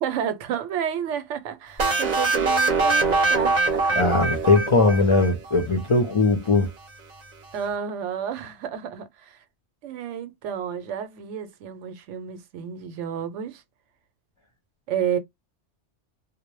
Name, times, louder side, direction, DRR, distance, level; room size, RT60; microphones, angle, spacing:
voice 1, 0.0-4.1 7.5-9.4 9.8-13.6 14.9-15.2, right 8 dB, 85° right, 0.9 m, -31 dB
sound 1, 1.8-5.6, right 3 dB, 45° right, 0.6 m, -23 dB
voice 2, 4.0-6.7, left 3 dB, 55° left, 0.3 m, -20 dB
2.1 x 2.1 x 3.0 m
omnidirectional pair, 1.2 m